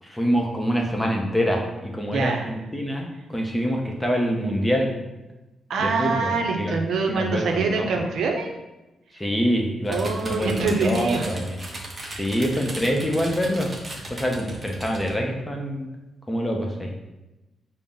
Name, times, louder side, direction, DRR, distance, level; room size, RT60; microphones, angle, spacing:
voice 1, 0.0-4.9 5.8-6.8 7.1-8.1 9.1-11.6 12.1-13.7 14.1-15.9 16.3-16.9, equal, 10° left, 1 dB, 0.6 m, -25 dB
voice 2, 2.1-2.4 5.7-8.5 9.9-11.3 12.0-12.2, right 4 dB, 75° right, 2 dB, 0.6 m, -25 dB
sound 1, 9.8-15.1, right 1 dB, 25° right, 0.8 m, -37 dB
5.4 x 2.0 x 3.6 m, 1.0 s
cardioid pair, 125°, 0 cm